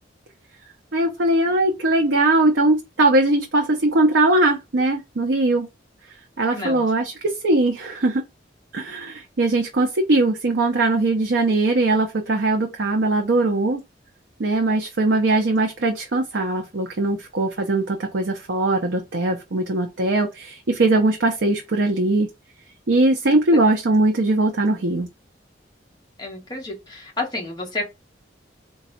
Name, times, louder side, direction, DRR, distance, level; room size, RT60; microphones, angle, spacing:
voice 1, 0.9-5.7 6.4-8.2 8.7-13.8 14.4-22.3 22.9-25.1, right 2 dB, 85° right, 0.7 m, -20 dB
voice 2, 6.5-6.8 23.5-23.6 26.2-27.8, left 2 dB, 25° left, 1.4 m, -30 dB
3.9 x 2.3 x 4.1 m
head